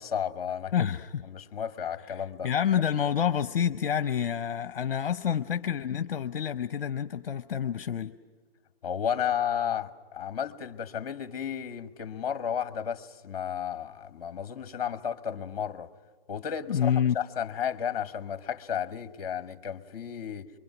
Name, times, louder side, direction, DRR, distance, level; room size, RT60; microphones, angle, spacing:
voice 1, 0.0-0.9 1.3-2.5 8.8-15.9 16.3-20.5, left 8 dB, 35° left, 1.3 m, -33 dB
voice 2, 0.7-1.2 2.4-8.1 16.7-17.2, left 8 dB, 60° left, 0.8 m, -28 dB
24.0 x 23.5 x 6.1 m
hypercardioid pair, 160°, 31 cm